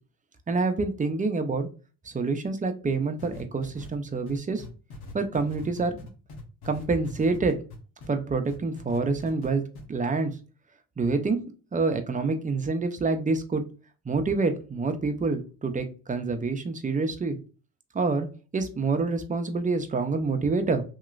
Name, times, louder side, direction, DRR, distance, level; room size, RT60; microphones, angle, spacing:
voice 1, 0.5-1.7 2.0-4.6 5.1-6.0 6.6-7.6 8.1-9.6 9.9-10.3 11.0-11.4 11.7-13.6 14.1-17.4 17.9-18.3 18.5-20.8, right 3 dB, 20° right, 7 dB, 0.6 m, -27 dB
sound 1, 3.2-8.1 8.4-9.5 9.7-9.8, left 3 dB, 75° left, 1.2 m, -43 dB
3.0 x 2.9 x 2.4 m, 0.35 s
cardioid pair, 90°, 37 cm